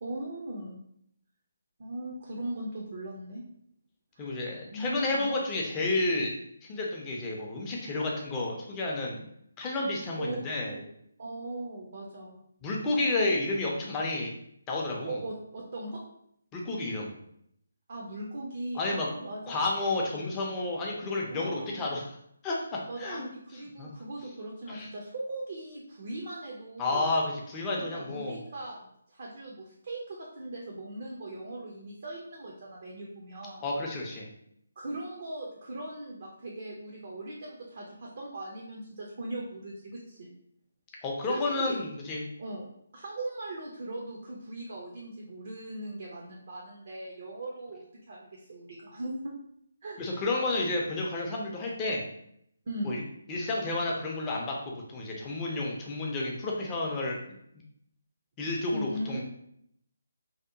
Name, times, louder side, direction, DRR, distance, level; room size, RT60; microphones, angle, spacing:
voice 1, 0.0-0.8 1.8-3.4 4.2-4.3 4.7-5.3 9.9-10.9 11.2-12.4 13.1-13.4 15.1-16.0 17.9-19.7 21.3-21.9 22.9-27.1 27.8-33.7 34.8-40.3 41.2-41.8 42.4-42.7 42.9-49.2 49.8-50.0 52.7-53.0 58.7-59.2, right 1 dB, 50° right, -2 dB, 0.5 m, -39 dB
voice 2, 4.2-6.3 6.6-9.2 9.6-10.7 12.6-14.3 14.7-15.2 16.5-17.1 18.7-19.1 19.5-22.0 22.4-23.3 23.8-23.9 24.7-24.9 26.8-28.4 33.6-34.3 41.0-42.3 50.0-52.1 52.8-53.0 53.3-57.2 58.4-59.2, left 2 dB, 20° left, -2 dB, 0.5 m, -31 dB
2.7 x 2.1 x 2.5 m, 0.73 s
figure-of-eight pair, 150°, 0 cm